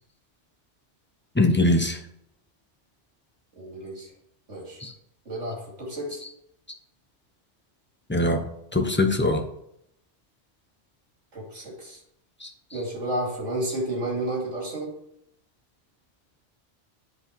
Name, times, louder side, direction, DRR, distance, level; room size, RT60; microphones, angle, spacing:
voice 1, 1.4-2.0 4.8-4.9 8.1-8.4 8.7-9.4 12.4-12.5, left 2 dB, 10° left, 5 dB, 0.6 m, -21 dB
voice 2, 3.6-4.1 4.5-4.8 5.2-6.2 11.3-12.0 12.7-14.9, right 1 dB, 75° right, -2 dB, 2.9 m, -31 dB
8.4 x 5.1 x 4.5 m, 0.75 s
omnidirectional pair, 1.2 m